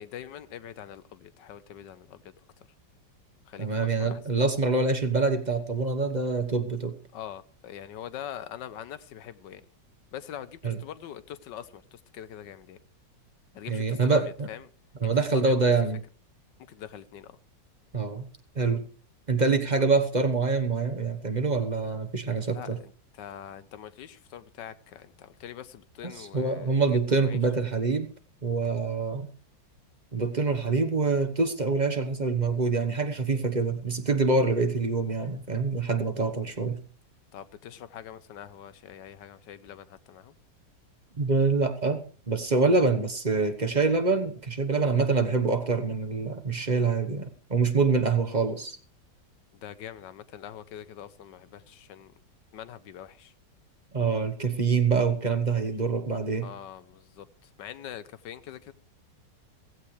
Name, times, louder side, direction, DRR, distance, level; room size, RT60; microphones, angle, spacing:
voice 1, 0.0-2.3 3.5-3.7 4.0-4.2 7.1-9.7 10.1-12.8 13.5-14.6 15.0-15.7 16.7-17.4 22.4-27.4 37.3-40.3 49.5-52.1 52.5-53.3 56.4-58.7, left 10 dB, 75° left, 1.5 m, -43 dB
voice 2, 3.6-6.9 10.6-10.8 13.7-14.5 15.0-16.0 17.9-18.3 18.5-18.8 19.3-22.8 26.0-28.1 28.4-29.3 30.1-36.8 41.2-42.0 42.3-48.8 53.9-56.5, right 4 dB, 30° right, 1.1 m, -25 dB
16.0 x 15.5 x 3.3 m
omnidirectional pair, 2.0 m